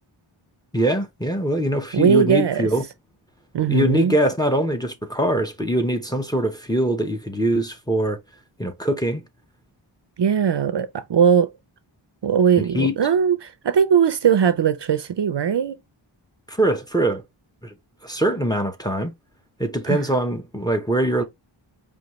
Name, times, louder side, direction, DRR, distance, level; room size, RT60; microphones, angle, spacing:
voice 1, 0.7-2.8 3.7-8.2 8.6-9.2 12.6-13.0 16.5-17.2 17.6-17.7 18.0-19.1 19.6-21.2, right 1 dB, 10° left, 0.7 m, -22 dB
voice 2, 1.9-2.7 3.5-4.1 10.2-11.5 12.2-15.8 19.8-20.0, right 7 dB, 60° right, 0.6 m, -19 dB
5.1 x 2.5 x 3.0 m
wide cardioid pair, 95°, 49 cm